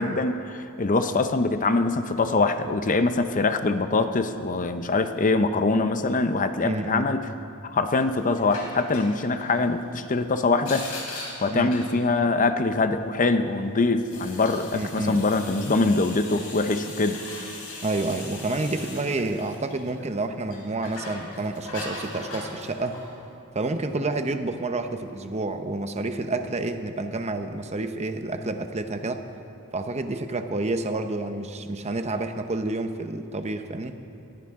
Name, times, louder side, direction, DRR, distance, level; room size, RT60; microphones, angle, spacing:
voice 1, 0.0-7.3 7.6-10.9 11.4-17.2, left 3 dB, 35° left, 9 dB, 0.7 m, -23 dB
voice 2, 6.6-7.1 11.5-11.8 14.7-15.3 17.8-23.0 23.5-29.2 29.7-34.0, right 2 dB, 30° right, 7 dB, 0.8 m, -29 dB
sound 1, 7.9-9.6 10.6-12.0 13.9-20.1 20.4-23.1, left 2 dB, 80° left, 4.4 m, -39 dB
22.0 x 15.5 x 3.7 m, 2.6 s
head